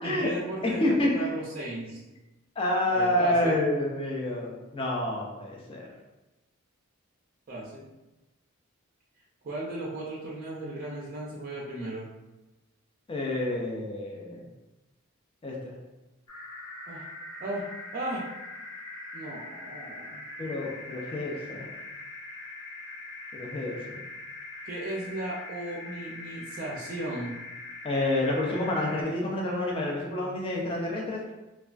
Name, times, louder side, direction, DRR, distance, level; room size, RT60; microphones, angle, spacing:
voice 1, 0.0-0.8 1.1-2.0 2.9-3.6 7.5-7.9 9.4-12.1 16.9-17.1 17.4-17.7 17.9-18.2 19.1-20.2 24.6-27.3, right 1 dB, 40° right, -4 dB, 0.4 m, -36 dB
voice 2, 0.8-1.1 2.6-5.9 13.1-14.5 15.4-15.7 20.4-21.7 23.3-24.0 27.8-31.3, left 1 dB, 25° left, -2 dB, 0.4 m, -28 dB
sound 1, 16.3-29.0, left 2 dB, 85° left, 1.2 m, -42 dB
3.2 x 2.2 x 2.4 m, 1.0 s
head